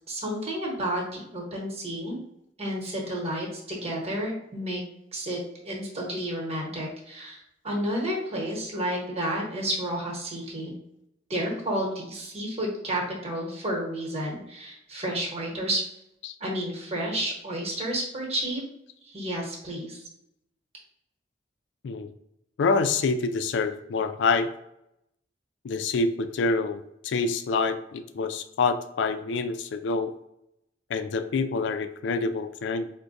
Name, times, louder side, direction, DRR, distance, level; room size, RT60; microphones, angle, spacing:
voice 1, 0.1-2.1 2.6-4.8 5.1-10.7 11.3-15.8 16.4-18.6 19.0-20.1, right 1 dB, 35° right, -2 dB, 1.0 m, -31 dB
voice 2, 22.6-24.5 25.6-30.1 30.9-32.9, left 4 dB, 90° left, 10 dB, 0.3 m, -26 dB
4.5 x 2.2 x 2.5 m, 0.80 s
head